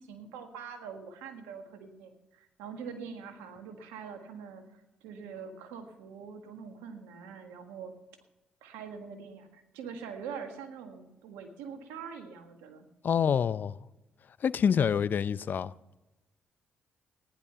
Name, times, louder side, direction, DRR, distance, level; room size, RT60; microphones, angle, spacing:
voice 1, 0.0-7.9 8.6-12.9, right 6 dB, 90° right, 1.7 m, -44 dB
voice 2, 13.0-13.8 14.4-15.7, left 7 dB, 55° left, 0.5 m, -26 dB
15.5 x 10.5 x 5.7 m
supercardioid pair, 50°, 4 cm